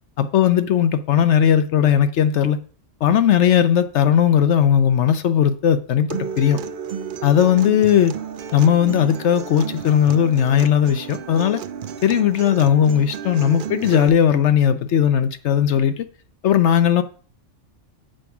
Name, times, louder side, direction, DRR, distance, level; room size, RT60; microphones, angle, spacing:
voice 1, 0.2-2.6 3.0-6.6 7.2-8.1 8.5-11.6 12.0-16.1 16.4-17.0, left 9 dB, 70° left, 0.9 m, -17 dB
Acoustic guitar, 6.1-14.1, right 7 dB, 60° right, 0.6 m, -32 dB
7.7 x 4.7 x 7.0 m
omnidirectional pair, 1.3 m